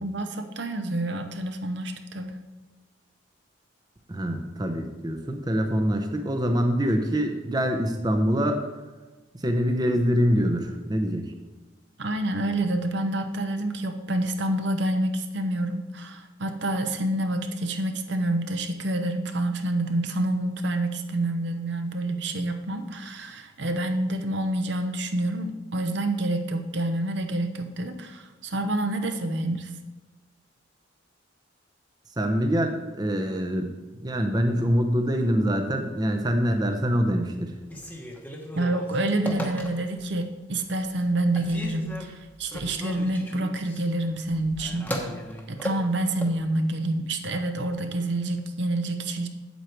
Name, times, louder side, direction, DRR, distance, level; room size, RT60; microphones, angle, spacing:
voice 1, 0.0-2.3 12.0-29.7 38.5-45.0 45.5-49.3, right 1 dB, 60° right, 6 dB, 0.7 m, -28 dB
voice 2, 4.1-8.6 9.3-11.3 32.2-33.7 34.0-37.5, equal, 20° right, 4 dB, 0.7 m, -25 dB
Telephone, 37.6-40.1 40.6-41.1 41.4-46.4, equal, 10° left, 0.9 m, -36 dB
8.1 x 7.9 x 4.5 m, 1.2 s
head